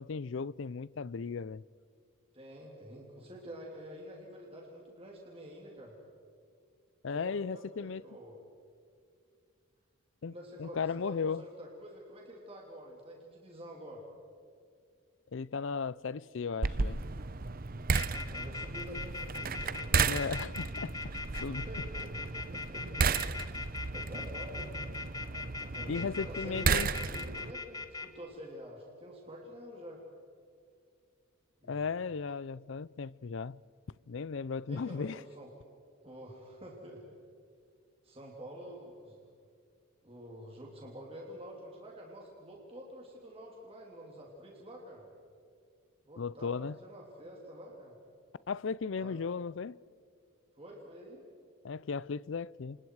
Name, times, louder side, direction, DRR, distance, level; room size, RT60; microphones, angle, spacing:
voice 1, 0.0-1.6 7.0-8.0 10.2-10.3 10.6-11.4 15.3-17.0 20.0-21.0 21.4-21.7 25.9-26.9 31.7-33.6 34.1-35.2 46.2-46.8 48.5-49.8 51.6-52.8, left 5 dB, 60° left, 0.5 m, -36 dB
voice 2, 2.3-6.0 7.1-8.4 10.3-14.1 18.0-20.0 21.5-22.1 22.5-22.9 23.4-24.9 25.6-30.0 31.6-31.9 34.7-35.5 36.0-37.0 38.0-39.2 40.0-45.0 46.0-48.0 49.0-49.4 50.5-51.2, equal, 25° right, 3.1 m, -48 dB
sound 1, 16.6-27.5, right 4 dB, 45° right, 0.7 m, -34 dB
sound 2, 17.9-28.1, left 3 dB, 15° left, 1.3 m, -40 dB
29.5 x 27.0 x 4.8 m
head